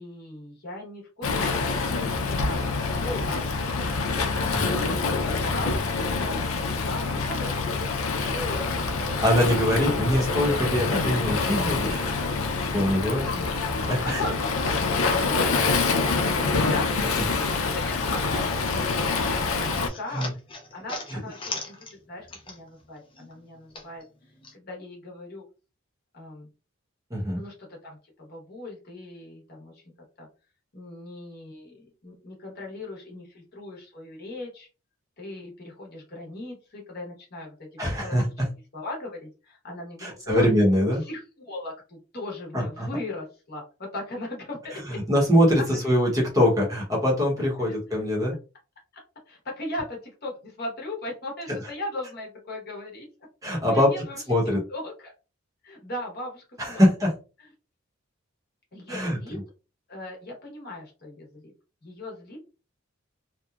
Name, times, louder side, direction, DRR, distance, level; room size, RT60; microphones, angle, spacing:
voice 1, 0.0-3.6 4.6-7.9 8.3-9.3 13.1-13.5 14.0-14.3 14.9-17.2 17.7-20.3 20.7-24.0 24.5-25.4 26.1-26.5 27.4-27.5 27.8-29.8 30.2-30.3 30.7-34.7 35.2-38.2 38.7-40.5 41.0-45.0 45.8-45.9 47.7-47.8 49.3-53.1 53.6-54.2 54.7-55.1 55.6-56.8 57.4-57.5 58.7-59.4 59.9-61.5 61.8-62.4, left 2 dB, 45° left, -1 dB, 0.9 m, -38 dB
Waves surf, 1.2-19.9, left 4 dB, 80° left, 0.5 m, -26 dB
voice 2, 9.2-12.0 12.7-13.3 13.9-14.2 20.1-20.3 21.1-21.2 27.1-27.4 37.8-38.5 40.0-41.0 42.5-42.9 44.9-48.3 53.4-53.9 54.3-54.6 56.6-57.1 58.9-59.4, equal, 15° right, -3 dB, 0.9 m, -23 dB
sound 1, 19.5-22.9 23.1-24.6, left 3 dB, 25° left, 0.4 m, -39 dB
2.8 x 2.1 x 2.3 m, 0.32 s
head